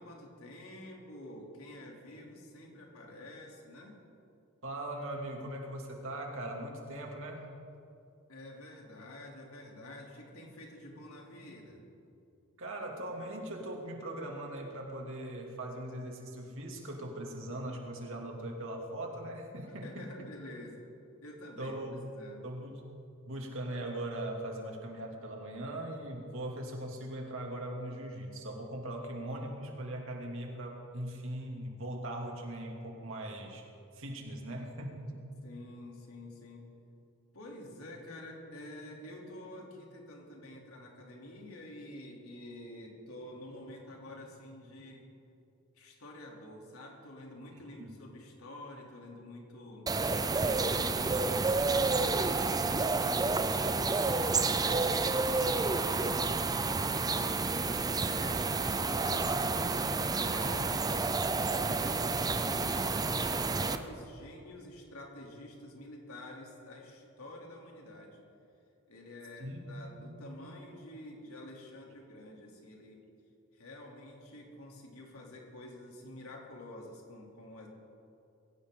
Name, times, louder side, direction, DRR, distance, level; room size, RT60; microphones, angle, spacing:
voice 1, 0.0-4.0 8.3-11.8 19.8-20.9 21.2-21.8 22.1-22.5 35.4-36.7 37.3-45.1 45.7-49.9 50.5-56.2 56.6-57.6 58.0-68.2 68.9-73.0 73.5-77.7, left 1 dB, 85° left, -1 dB, 3.2 m, -48 dB
voice 2, 4.6-7.5 12.6-20.3 21.6-22.0 22.4-22.9 23.3-33.7 33.9-35.2 47.5-47.9 69.4-69.7 70.0-70.2, right 1 dB, 65° right, 0 dB, 2.7 m, -40 dB
sound 1, 49.9-63.8, right 3 dB, 20° right, 0.6 m, -30 dB
22.0 x 17.0 x 3.9 m, 2.6 s
head